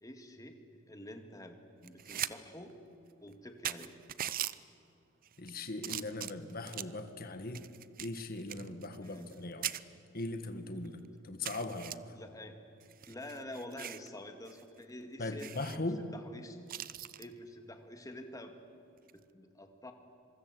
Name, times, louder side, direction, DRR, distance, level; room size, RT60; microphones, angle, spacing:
voice 1, 0.0-0.6 0.9-1.6 1.8-2.7 3.2-3.9 9.0-9.3 12.1-12.5 13.1-15.7 16.1-16.6 17.2-18.6 19.3-19.9, left 1 dB, 15° left, 6 dB, 2.1 m, -47 dB
sound 1, 1.8-2.3 2.7-2.8 3.3-3.4 3.6-4.5 5.2-5.5 5.8-7.0 7.5-9.4 9.6-9.8 10.4-10.5 10.8-10.9 11.4-11.9 12.8-14.1 14.5-14.6 14.9-15.0 15.4-15.8 16.7-17.3 19.0-19.2, right 11 dB, 45° right, 0.6 m, -40 dB
voice 2, 5.4-7.6 8.0-9.7 10.1-12.0 15.2-16.0, left 2 dB, 45° left, 8 dB, 1.7 m, -39 dB
26.0 x 24.0 x 7.9 m, 2.6 s
head